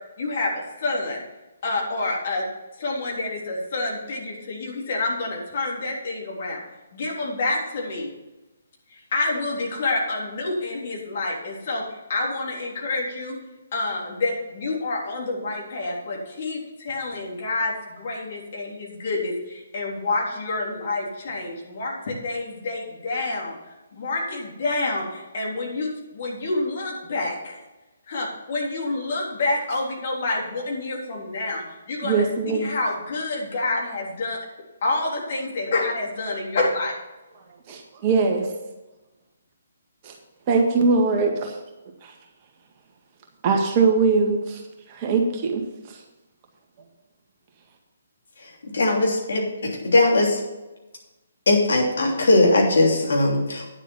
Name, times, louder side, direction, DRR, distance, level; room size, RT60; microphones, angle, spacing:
voice 1, 0.2-1.2 1.6-2.4 2.8-6.6 6.9-8.1 8.9-13.4 13.7-27.6 28.1-34.4 34.8-36.9, left 2 dB, 45° left, -2 dB, 3.6 m, -28 dB
voice 2, 32.0-32.7 37.7-38.5 40.0-40.1 40.5-41.6 42.0-42.1 43.4-44.6 44.9-45.6 45.9-46.0, right 4 dB, 30° right, 1 dB, 1.8 m, -21 dB
voice 3, 48.8-49.4 49.9-50.3 51.5-53.6, left 2 dB, 65° left, 0 dB, 3.0 m, -19 dB
9.9 x 7.3 x 5.6 m, 1.1 s
figure-of-eight pair, 135°, 0 cm